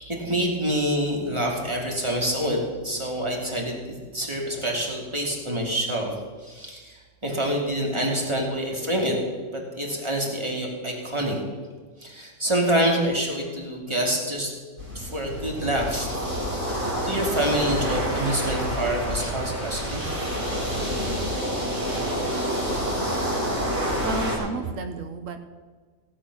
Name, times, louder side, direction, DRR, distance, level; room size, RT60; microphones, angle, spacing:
voice 1, 0.1-6.1 6.4-9.2 9.5-11.4 12.0-14.5 14.9-16.2 16.5-20.3, right 1 dB, 20° right, -1 dB, 2.7 m, -27 dB
sound 1, 14.8-24.4, equal, 40° right, 4.3 m, -28 dB
voice 2, 24.0-25.4, right 3 dB, 85° right, 8 dB, 1.3 m, -31 dB
17.0 x 9.0 x 6.1 m, 1.5 s
omnidirectional pair, 1.3 m